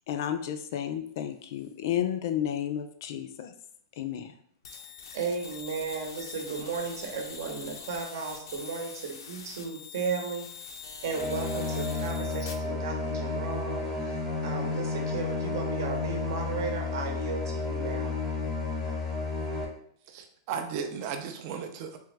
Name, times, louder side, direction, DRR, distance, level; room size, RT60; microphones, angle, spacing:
voice 1, 0.1-3.5 4.0-4.3, left 10 dB, 50° left, 8 dB, 0.3 m, -32 dB
sound 1, 4.6-12.5, left 6 dB, 90° left, 0.6 m, -44 dB
voice 2, 5.1-14.2 14.4-18.1, right 5 dB, 60° right, 3 dB, 0.9 m, -35 dB
sound 2, 11.1-19.6, left 3 dB, 5° left, 0.7 m, -31 dB
voice 3, 20.1-22.0, right 6 dB, 35° right, 6 dB, 0.4 m, -35 dB
3.5 x 2.9 x 3.2 m, 0.64 s
supercardioid pair, 170°, 2 cm